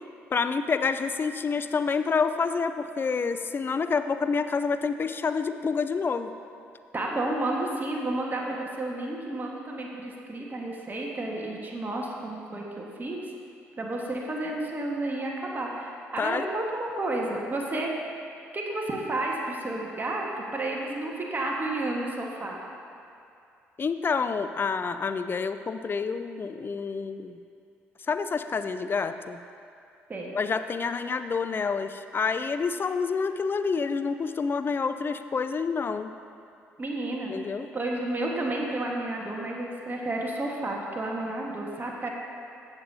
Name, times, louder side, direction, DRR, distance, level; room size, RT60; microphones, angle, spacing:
voice 1, 0.3-6.3 16.2-16.4 23.8-27.4 28.1-29.4 30.3-36.1 37.3-37.7, left 5 dB, 35° left, 10 dB, 0.5 m, -28 dB
voice 2, 6.9-13.2 13.8-17.9 18.5-22.6 30.1-30.3 36.8-37.3 37.7-42.1, right 2 dB, 30° right, -1 dB, 1.5 m, -31 dB
15.0 x 7.0 x 2.8 m, 2.5 s
hypercardioid pair, 55°, 6 cm